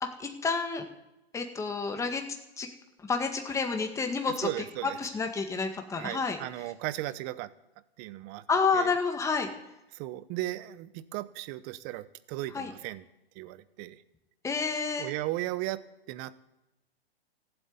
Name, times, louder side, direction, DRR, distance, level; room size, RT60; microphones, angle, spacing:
voice 1, 0.0-0.9 1.3-2.2 2.6-2.7 3.0-4.5 4.8-6.4 8.5-9.5 12.5-12.7 14.4-15.1, left 4 dB, 10° left, 5 dB, 1.8 m, -29 dB
voice 2, 4.4-5.0 6.0-7.5 8.0-8.4 8.7-8.9 9.9-13.0 13.3-14.0 15.0-15.8 16.1-16.3, right 16 dB, 30° right, 15 dB, 0.9 m, -36 dB
15.5 x 8.1 x 9.5 m, 0.97 s
hypercardioid pair, 135°, 31 cm